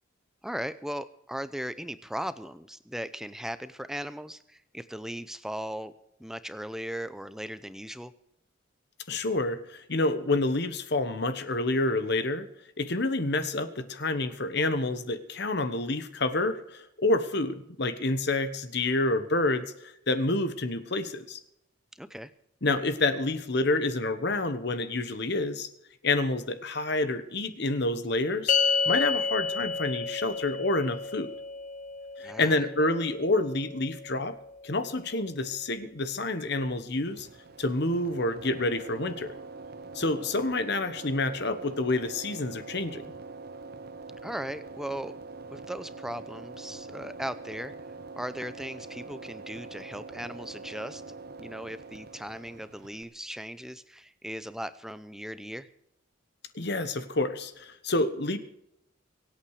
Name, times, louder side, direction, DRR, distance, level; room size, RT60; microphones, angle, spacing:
voice 1, 0.4-5.9 6.2-8.1 21.9-22.3 32.2-32.6 44.2-45.1 45.5-47.7 48.1-51.0 51.4-55.7, equal, ahead, 13 dB, 0.6 m, -38 dB
voice 2, 9.1-12.5 12.8-21.4 22.6-25.7 26.0-28.5 28.8-31.3 32.2-34.3 34.6-37.3 37.6-39.3 39.9-43.0 56.5-58.4, left 2 dB, 55° left, 11 dB, 1.2 m, -28 dB
sound 1, 28.5-35.0, left 5 dB, 40° left, 0.5 m, -31 dB
sound 2, 37.1-53.0, right 3 dB, 50° right, 0.7 m, -44 dB
24.0 x 8.9 x 4.9 m, 0.78 s
head